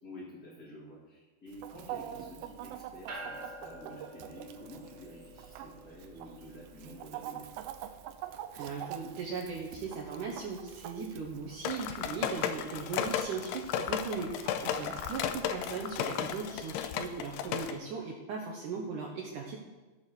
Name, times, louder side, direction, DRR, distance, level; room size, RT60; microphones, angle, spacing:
voice 1, 0.0-7.5 14.6-15.0, equal, 30° left, -6 dB, 1.7 m, -49 dB
Chicken rooster, 1.5-17.0, right 11 dB, 85° right, 2.1 m, -47 dB
sound 1, 3.1-14.7, right 1 dB, 40° right, 3.0 m, -52 dB
voice 2, 8.5-19.6, right 5 dB, 70° right, -1 dB, 2.1 m, -38 dB
sound 2, 11.7-17.7, left 9 dB, 80° left, 2.6 m, -34 dB
15.0 x 7.1 x 6.5 m, 1.2 s
omnidirectional pair, 4.9 m